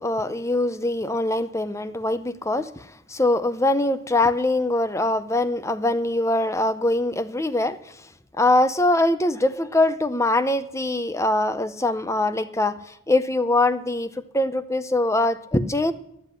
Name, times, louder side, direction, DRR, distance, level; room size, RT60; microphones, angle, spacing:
voice 1, 0.0-7.9 8.4-15.9, left 2 dB, 15° left, 13 dB, 0.6 m, -23 dB
13.0 x 7.6 x 10.0 m, 0.76 s
head